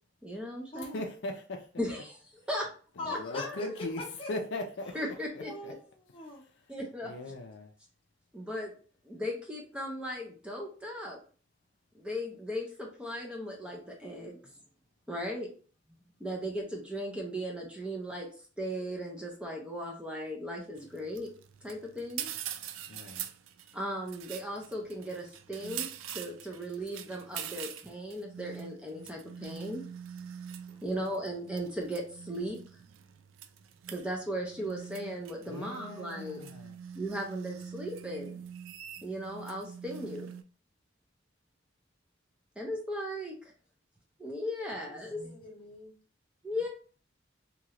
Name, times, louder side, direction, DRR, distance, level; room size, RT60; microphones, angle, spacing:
voice 1, 0.2-1.0 1.8-2.2 2.5-2.6 3.0-3.6 4.9-5.7 6.7-7.1 8.3-8.7 9.0-11.2 11.9-14.4 15.1-15.5 15.9-18.3 18.6-21.3 21.6-22.3 23.7-25.9 26.1-29.8 30.8-32.6 33.9-36.4 36.9-38.4 39.0-40.4 42.6-43.5 44.2-45.4 46.4-46.7, equal, 5° right, 0 dB, 0.5 m, -37 dB
voice 2, 0.8-1.7 3.0-4.0 4.3-5.0 5.3-5.7 7.0-7.7 22.9-23.3 35.5-36.7, left 2 dB, 60° left, 3 dB, 0.4 m, -39 dB
voice 3, 3.0-3.7 4.2-4.3 5.4-6.4 30.7-30.9 44.6-45.0 45.2-45.9, left 2 dB, 30° left, -1 dB, 0.9 m, -42 dB
sound 1, 20.8-40.4, right 9 dB, 85° right, 0.3 m, -44 dB
3.0 x 2.8 x 2.4 m, 0.40 s
head